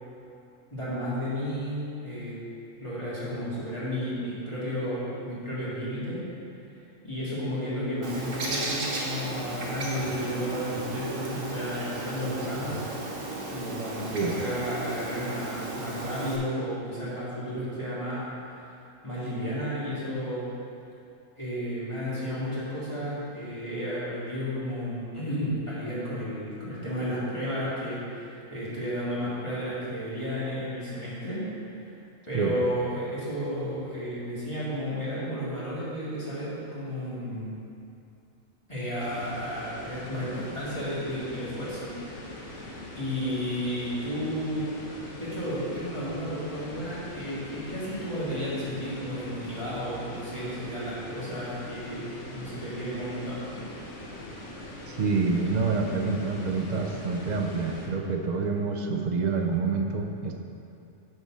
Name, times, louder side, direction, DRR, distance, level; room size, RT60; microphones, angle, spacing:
voice 1, 0.7-2.4 2.8-6.2 6.8-12.9 13.5-20.5 21.4-31.5 31.8-31.9 32.3-37.5 38.7-42.0 42.3-42.7 43.0-44.7 45.2-53.7, equal, 25° left, -10 dB, 2.0 m, -33 dB
Bird, 8.0-16.4, right 2 dB, 75° right, 1.6 m, -35 dB
sound 1, 39.0-57.9, left 1 dB, 65° left, 1.4 m, -42 dB
voice 2, 54.9-60.3, right 4 dB, 45° right, 3 dB, 0.7 m, -27 dB
8.4 x 4.8 x 6.0 m, 2.6 s
omnidirectional pair, 1.3 m